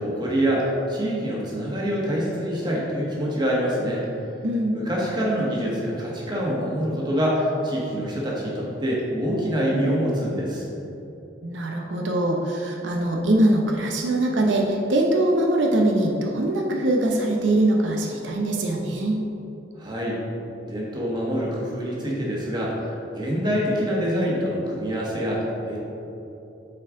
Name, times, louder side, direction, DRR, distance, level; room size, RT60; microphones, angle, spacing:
voice 1, 0.0-4.0 4.7-10.6 19.8-20.2 20.7-25.9, equal, 25° right, -4 dB, 1.4 m, -25 dB
voice 2, 11.4-19.2, right 1 dB, 90° right, 1 dB, 0.7 m, -22 dB
8.6 x 4.4 x 3.7 m, 2.9 s
head